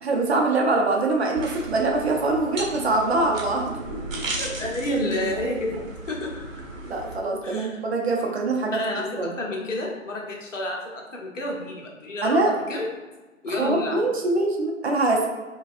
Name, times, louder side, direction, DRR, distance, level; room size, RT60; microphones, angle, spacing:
voice 1, 0.0-3.8 6.8-8.8 9.2-9.3 12.2-12.5 13.5-15.3, right 2 dB, 55° right, 1 dB, 0.7 m, -23 dB
sound 1, 1.3-7.2, right 2 dB, 70° right, 1.0 m, -35 dB
voice 2, 4.4-5.8 6.1-6.4 7.4-7.8 8.7-12.9 13.4-14.0, left 1 dB, 65° left, 0 dB, 1.0 m, -30 dB
4.8 x 2.3 x 2.5 m, 1.2 s
figure-of-eight pair, 150°, 40 cm